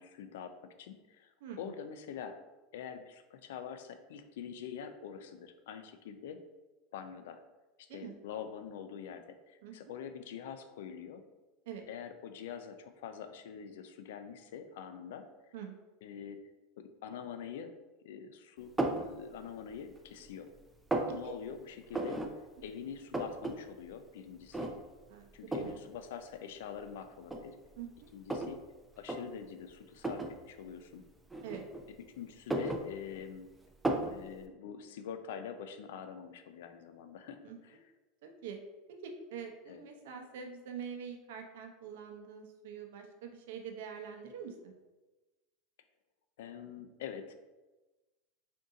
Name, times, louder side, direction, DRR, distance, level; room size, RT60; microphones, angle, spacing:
voice 1, 0.0-2.4 2.7-6.4 6.9-7.4 7.9-11.2 11.9-15.3 16.0-16.5 16.8-17.7 18.0-18.7 19.0-20.5 21.1-22.2 22.6-24.7 25.3-27.6 28.1-28.6 29.0-31.0 31.9-33.5 34.1-37.9 39.7-39.8 46.4-47.3, left 7 dB, 85° left, 8 dB, 0.4 m, -45 dB
sound 1, 18.8-19.1 19.6-20.3 20.6-21.1 21.9-22.3 22.6-22.7 22.9-23.5 23.9-24.0 24.5-25.0 25.5-25.8 26.6-26.7 27.2-28.6 29.0-29.2 30.0-30.3 31.3-32.0 32.3-33.4 33.8-34.2, right 2 dB, 5° right, 0.4 m, -34 dB
voice 2, 27.8-28.1 31.4-31.6 37.4-37.6 38.4-38.6 39.0-44.7, right 7 dB, 80° right, 3 dB, 0.7 m, -44 dB
3.7 x 2.6 x 3.8 m, 1.1 s
supercardioid pair, 140°, 0 cm